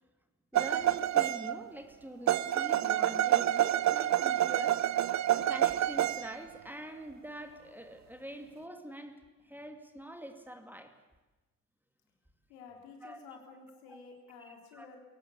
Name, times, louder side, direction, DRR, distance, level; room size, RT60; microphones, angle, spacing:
voice 1, 0.5-4.8 5.3-9.2 9.4-10.9 13.0-13.2 13.9-14.0 14.5-14.9, right 1 dB, 5° right, 6 dB, 2.5 m, -45 dB
sound 1, 0.5-1.7 2.3-6.4, right 12 dB, 40° right, 0.7 m, -28 dB
voice 2, 12.5-15.0, left 5 dB, 75° left, 2 dB, 3.8 m, -51 dB
21.5 x 17.5 x 8.5 m, 1.1 s
hypercardioid pair, 55°, 45 cm